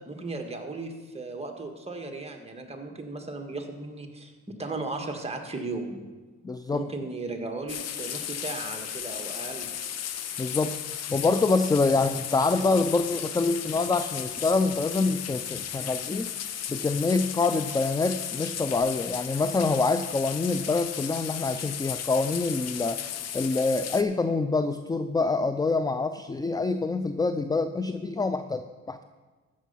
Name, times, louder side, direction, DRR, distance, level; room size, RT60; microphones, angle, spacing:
voice 1, 0.1-6.0 6.7-9.7, right 3 dB, 20° right, 4 dB, 1.6 m, -36 dB
voice 2, 6.4-6.8 10.4-10.8 11.1-16.3 16.7-23.0 23.3-29.0, left 3 dB, 15° left, 10 dB, 0.4 m, -26 dB
sound 1, 7.7-24.0, left 9 dB, 60° left, 0.8 m, -35 dB
14.5 x 6.3 x 5.6 m, 1.3 s
cardioid pair, 90°, 30 cm